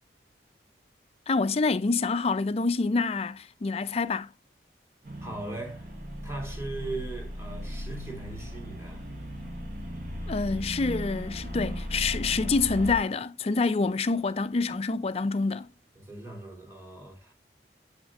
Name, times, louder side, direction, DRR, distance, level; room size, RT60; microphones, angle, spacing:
voice 1, 1.3-4.3 10.3-15.7, left 4 dB, 35° left, 0.4 m, -27 dB
sound 1, 5.0-13.0, equal, 50° right, 1.6 m, -37 dB
voice 2, 5.2-5.9 6.2-9.1 16.0-17.3, right 2 dB, 15° right, 2.6 m, -39 dB
7.3 x 6.1 x 2.4 m
head